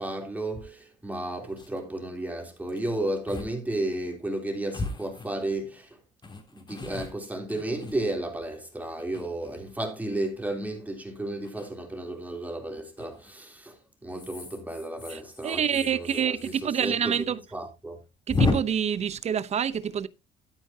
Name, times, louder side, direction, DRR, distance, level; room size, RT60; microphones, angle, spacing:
voice 1, 0.0-6.0 6.5-17.2 17.5-18.0, right 1 dB, 10° right, 3.4 m, -33 dB
sound 1, 0.5-0.6 1.1-1.2 1.4-1.8 2.7-2.8 3.3-3.5 3.8-3.9 4.7-5.7 6.2-8.4 9.0-9.8 11.4-11.7 13.0-13.3 14.1-16.9 17.1-17.2 17.5-17.6 18.3-18.5, left 4 dB, 25° left, 3.3 m, -33 dB
voice 2, 15.1-17.4 18.3-20.1, right 8 dB, 40° right, 0.8 m, -27 dB
12.0 x 9.6 x 2.8 m
cardioid pair, 110°, 17 cm